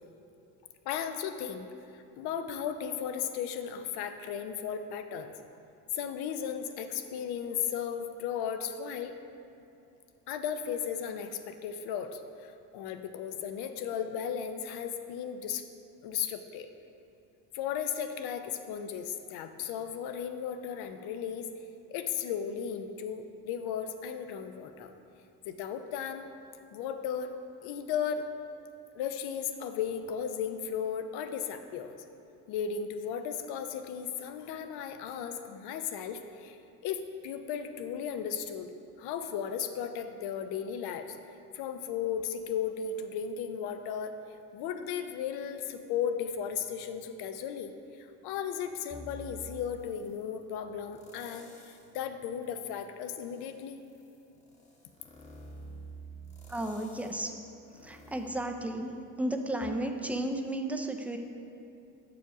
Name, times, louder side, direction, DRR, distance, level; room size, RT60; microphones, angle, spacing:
voice 1, 0.9-1.7 1.9-5.3 5.9-9.1 10.3-15.6 16.0-16.7 17.5-21.5 21.9-24.9 25.4-26.3 26.7-27.3 27.6-28.3 28.9-32.0 32.5-36.6 36.8-38.7 39.0-41.2 41.5-44.1 44.5-53.8, left 8 dB, 70° left, 8 dB, 0.7 m, -35 dB
sound 1, 48.9-50.3 50.9-52.0 52.4-59.1 59.6-59.7, right 3 dB, 15° left, 1.0 m, -50 dB
voice 2, 56.5-57.3 57.7-58.9 59.2-61.2, right 1 dB, 5° right, 4 dB, 0.4 m, -33 dB
6.8 x 5.0 x 4.9 m, 2.7 s
supercardioid pair, 95°, 41 cm